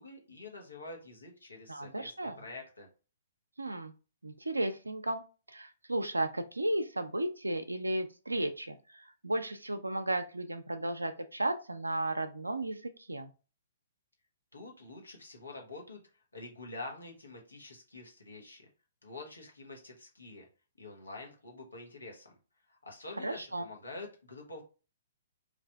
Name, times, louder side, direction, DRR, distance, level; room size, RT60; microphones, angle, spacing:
voice 1, 0.0-2.9 14.5-16.0 16.3-18.7 19.0-20.5 20.8-22.4 22.7-24.6, left 2 dB, 85° left, 0 dB, 1.2 m, -47 dB
voice 2, 1.7-2.4 3.6-3.9 4.2-5.2 5.5-13.3 23.2-23.7, right 1 dB, 90° right, 7 dB, 0.4 m, -34 dB
3.3 x 2.5 x 3.4 m, 0.34 s
figure-of-eight pair, 120°, 0 cm